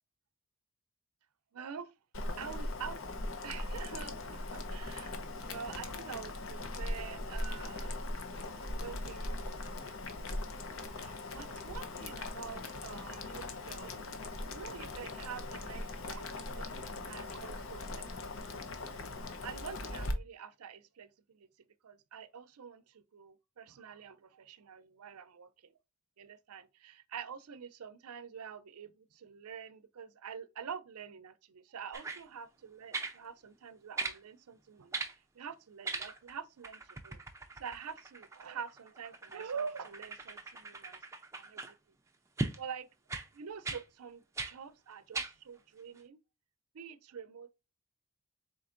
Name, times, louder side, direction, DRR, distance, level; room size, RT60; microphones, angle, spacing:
voice 1, 1.5-1.9 2.4-8.0 8.8-9.8 10.9-13.9 14.5-16.7 17.1-18.1 19.2-21.5 21.8-25.7 26.2-35.0 35.3-37.2 37.6-41.0 41.3-41.8 42.6-42.9 43.3-46.2 46.7-47.5, right 6 dB, 90° right, 0.5 m, -46 dB
Boiling, 2.1-20.1, left 2 dB, 65° left, 0.8 m, -40 dB
sound 1, 31.9-32.2 32.9-33.2 34.0-34.2 34.9-35.2 35.8-36.4 36.6-41.7 42.4-42.6 43.1-43.3 43.6-43.8 44.4-44.5 45.1-45.3 46.0-46.1, right 3 dB, 15° right, 0.4 m, -39 dB
4.3 x 3.9 x 2.5 m
head